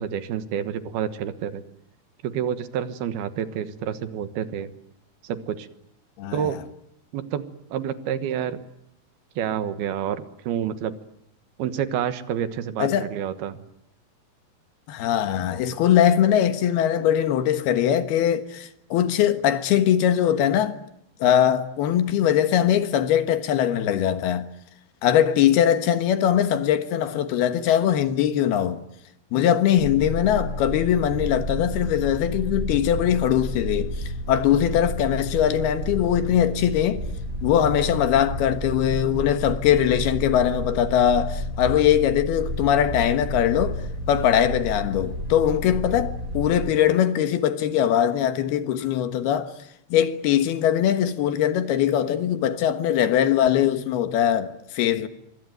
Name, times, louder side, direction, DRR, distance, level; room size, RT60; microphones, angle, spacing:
voice 1, 0.0-1.6 2.2-4.7 5.2-5.7 6.3-6.6 7.1-8.6 9.4-10.9 11.6-13.6, right 9 dB, 75° right, 3.3 m, -28 dB
voice 2, 6.2-6.5 12.8-13.1 14.9-20.8 21.2-24.5 25.0-28.8 29.3-37.0 37.4-43.8 44.1-49.6 49.9-55.1, left 10 dB, 85° left, 3.4 m, -21 dB
sound 1, 29.8-46.7, left 1 dB, 20° right, 3.6 m, -31 dB
25.0 x 24.5 x 9.2 m
omnidirectional pair, 4.5 m